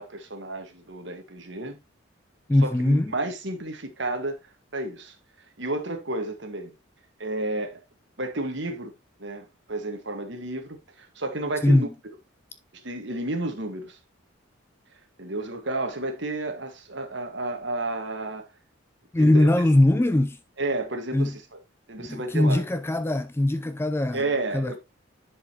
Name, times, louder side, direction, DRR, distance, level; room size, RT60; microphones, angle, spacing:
voice 1, 0.0-1.8 2.6-4.4 4.7-5.1 5.6-6.7 7.2-7.8 8.2-8.9 9.2-11.9 12.8-14.0 15.2-18.5 19.2-19.5 20.6-21.6 21.9-22.6 24.1-24.8, right 2 dB, 55° right, 1.6 m, -31 dB
voice 2, 2.5-3.1 11.6-11.9 19.1-20.4 21.1-21.3 22.0-24.2 24.5-24.8, left 1 dB, 10° left, 0.3 m, -21 dB
10.5 x 5.0 x 2.9 m
head